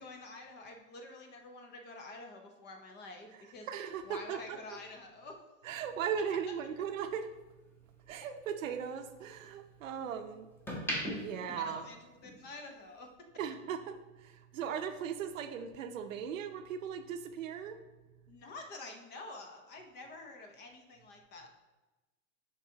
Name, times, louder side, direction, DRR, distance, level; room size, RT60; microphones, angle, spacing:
voice 1, 0.0-3.7 4.0-5.4 11.5-13.1 18.3-21.5, left 2 dB, 25° left, 4 dB, 0.8 m, -48 dB
voice 2, 3.7-4.6 5.6-7.3 8.1-10.5 11.1-11.8 13.4-17.8, right 7 dB, 70° right, 8 dB, 0.8 m, -38 dB
sound 1, 5.8-8.2 8.6-10.0 10.4-12.6 12.9-13.1, equal, 5° left, 1.1 m, -41 dB
10.5 x 3.9 x 2.8 m, 1.1 s
hypercardioid pair, 130°, 40 cm